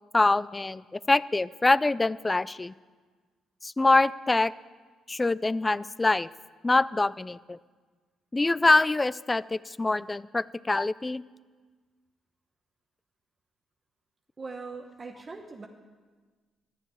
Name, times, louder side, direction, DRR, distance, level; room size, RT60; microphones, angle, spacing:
voice 1, 0.1-2.7 3.6-4.5 5.1-6.3 6.6-7.6 8.3-11.2, left 2 dB, 20° left, 19 dB, 0.3 m, -24 dB
voice 2, 14.4-15.7, right 4 dB, 30° right, 3 dB, 1.0 m, -41 dB
12.5 x 7.2 x 9.2 m, 1.4 s
cardioid pair, 90°, 0 cm